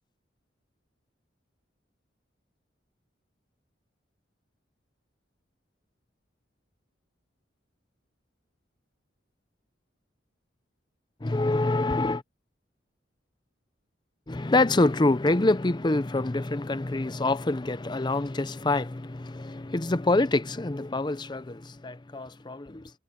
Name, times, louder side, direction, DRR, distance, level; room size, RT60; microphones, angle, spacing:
voice 1, 11.2-12.2 14.3-22.9, left 2 dB, 25° left, 0.6 m, -26 dB
head